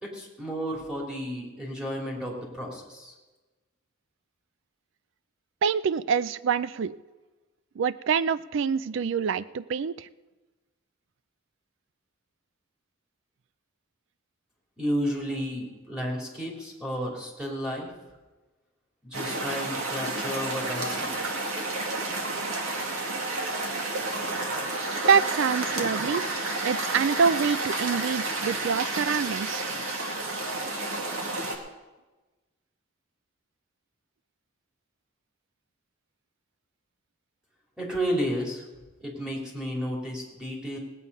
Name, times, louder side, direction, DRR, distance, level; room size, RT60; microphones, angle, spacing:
voice 1, 0.0-3.1 14.8-17.9 19.0-21.1 37.8-38.6 39.0-40.8, equal, 5° right, -4 dB, 3.0 m, -32 dB
voice 2, 5.6-6.9 7.8-10.1 25.1-26.3 26.6-29.7, right 6 dB, 60° right, 16 dB, 0.4 m, -25 dB
sound 1, 19.1-31.6, right 2 dB, 75° right, 2.1 m, -30 dB
18.5 x 9.1 x 5.4 m, 1.2 s
head